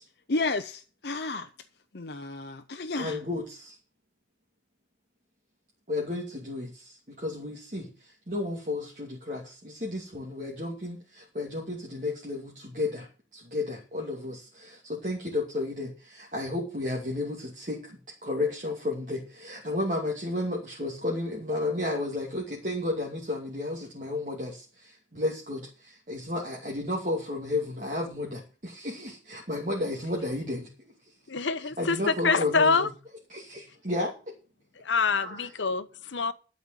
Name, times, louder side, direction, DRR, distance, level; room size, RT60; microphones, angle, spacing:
voice 1, 0.3-1.5 1.9-3.2, left 3 dB, 60° left, 0.7 m, -32 dB
voice 2, 3.0-3.7 5.9-7.9 8.3-30.7 31.8-32.9 33.3-34.3 35.1-35.4, left 2 dB, 40° right, 2.7 m, -33 dB
voice 3, 31.3-32.9 34.7-36.3, left 4 dB, 80° left, 0.9 m, -26 dB
12.0 x 5.4 x 9.0 m
head